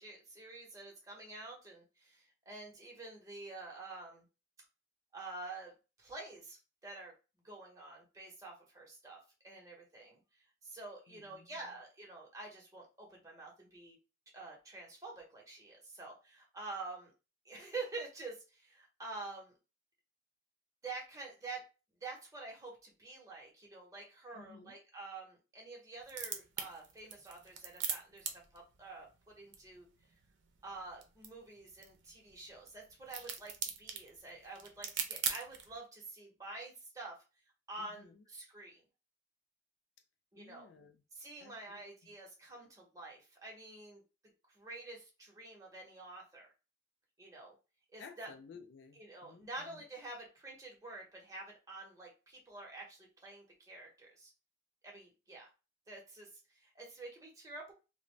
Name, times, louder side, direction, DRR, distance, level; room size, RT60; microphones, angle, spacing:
voice 1, 0.0-4.2 5.1-7.1 7.4-9.2 9.4-10.2 10.6-14.0 14.3-17.1 17.4-19.5 20.8-21.6 22.0-29.9 30.6-37.2 37.7-38.8 40.3-40.7 41.1-44.0 44.5-46.5 47.2-47.5 47.9-48.3 48.9-54.3 54.8-55.5 55.9-56.3 56.5-57.7, right 3 dB, 20° right, 0.8 m, -48 dB
voice 2, 11.1-11.5 24.3-24.8 37.8-38.2 40.4-41.0 41.4-41.9 48.0-49.8, left 5 dB, 85° left, 0.4 m, -56 dB
sound 1, 26.0-35.8, right 7 dB, 75° right, 0.5 m, -43 dB
2.5 x 2.1 x 3.1 m
head